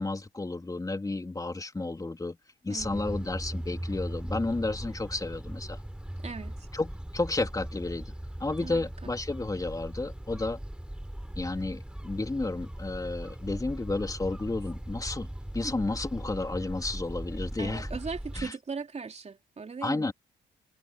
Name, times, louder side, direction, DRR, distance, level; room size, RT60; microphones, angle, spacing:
voice 1, 0.0-2.4 2.6-5.8 6.7-8.1 8.4-10.6 11.4-15.3 15.5-17.9 18.4-18.5 19.8-20.1, left 2 dB, 15° left, 3.5 m, -32 dB
voice 2, 2.7-3.2 6.2-6.7 8.6-9.1 17.6-20.1, right 5 dB, 35° right, 3.6 m, -39 dB
sound 1, 2.8-18.5, right 1 dB, 5° right, 7.3 m, -39 dB
cardioid pair, 90°, 20 cm